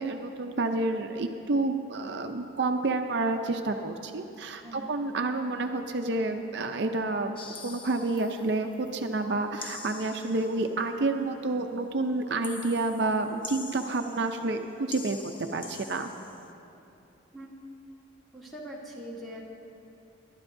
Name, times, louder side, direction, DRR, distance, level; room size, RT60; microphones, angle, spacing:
voice 1, 0.0-16.1, right 2 dB, 60° right, 5 dB, 0.5 m, -29 dB
voice 2, 4.6-4.9 17.3-17.5 18.3-19.4, equal, ahead, -5 dB, 1.6 m, -42 dB
sound 1, 7.4-9.0 9.6-10.8 12.4-14.6 14.9-16.5, left 4 dB, 25° left, 0.6 m, -45 dB
22.0 x 12.0 x 2.6 m, 2.8 s
head